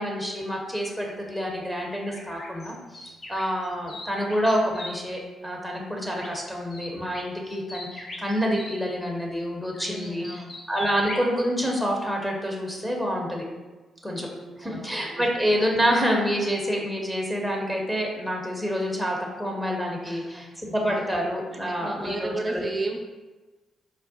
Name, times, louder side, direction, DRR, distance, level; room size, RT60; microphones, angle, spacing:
voice 1, 0.0-13.4 14.0-14.3 14.6-22.6, equal, 5° left, 0 dB, 0.7 m, -27 dB
sound 1, 2.0-4.9 6.1-6.4 6.7-8.8 9.7-11.3, left 1 dB, 45° left, 0.7 m, -40 dB
voice 2, 9.8-10.5 14.1-15.2 20.0-20.4 21.5-23.0, right 2 dB, 30° right, 1 dB, 0.5 m, -34 dB
4.3 x 2.0 x 2.7 m, 1.2 s
hypercardioid pair, 50°, 0 cm